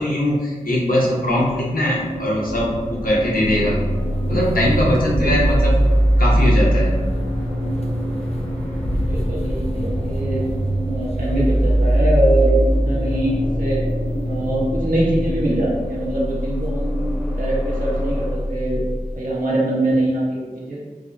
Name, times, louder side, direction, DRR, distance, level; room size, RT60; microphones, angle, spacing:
voice 1, 0.0-3.8 4.3-5.8 6.2-7.0, left 1 dB, 90° left, -4 dB, 0.8 m, -20 dB
sound 1, 1.2-18.3, equal, 15° left, 1.0 m, -31 dB
sound 2, 3.4-19.1, left 1 dB, 45° left, 0.4 m, -29 dB
voice 2, 3.4-3.7 5.1-5.4 9.0-10.4 10.8-13.8 14.2-18.8 19.1-20.8, right 1 dB, 70° right, -6 dB, 1.1 m, -23 dB
sound 3, 3.5-15.5, right 1 dB, 55° right, 0.7 m, -21 dB
5.0 x 2.1 x 2.6 m, 1.3 s
wide cardioid pair, 60°, 14 cm